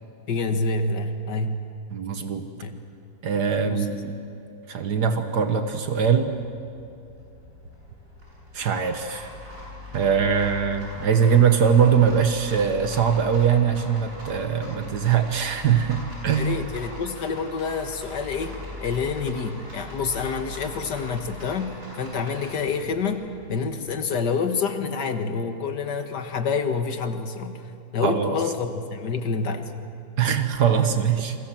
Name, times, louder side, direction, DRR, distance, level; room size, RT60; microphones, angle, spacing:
voice 1, 0.3-1.6 2.6-2.8 3.6-4.1 16.4-23.2 23.5-27.6 27.9-29.7, left 4 dB, 85° left, 7 dB, 2.2 m, -27 dB
voice 2, 1.9-2.5 3.2-4.2 4.7-6.3 8.5-9.3 9.9-16.6 28.0-28.3 30.2-31.4, right 7 dB, 75° right, 7 dB, 1.8 m, -22 dB
Rattle, 6.5-23.5, equal, 50° right, 8.7 m, -44 dB
sound 1, 9.2-21.6, left 3 dB, 5° right, 5.7 m, -43 dB
29.0 x 23.5 x 7.5 m, 2.7 s
omnidirectional pair, 1.8 m